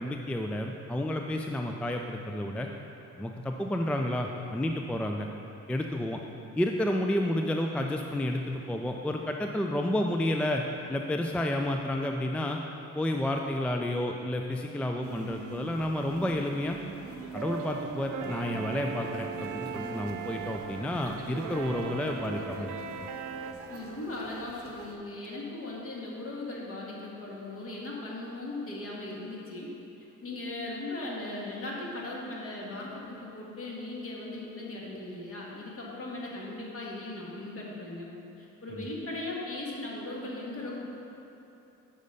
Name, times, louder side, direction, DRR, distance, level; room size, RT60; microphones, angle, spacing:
voice 1, 0.0-2.7 3.1-5.3 5.7-6.2 6.6-10.6 10.9-12.6 12.9-16.8 17.3-22.7 38.7-38.9, left 1 dB, 5° left, 3 dB, 0.3 m, -30 dB
sound 1, 15.0-25.0, right 3 dB, 50° right, 0.8 m, -45 dB
sound 2, 17.3-23.5, right 5 dB, 85° right, 0.6 m, -38 dB
voice 2, 23.7-29.7 30.2-38.1 38.4-40.9, left 2 dB, 45° left, -4 dB, 1.7 m, -38 dB
6.6 x 5.2 x 5.4 m, 3.0 s
cardioid pair, 90°, 30 cm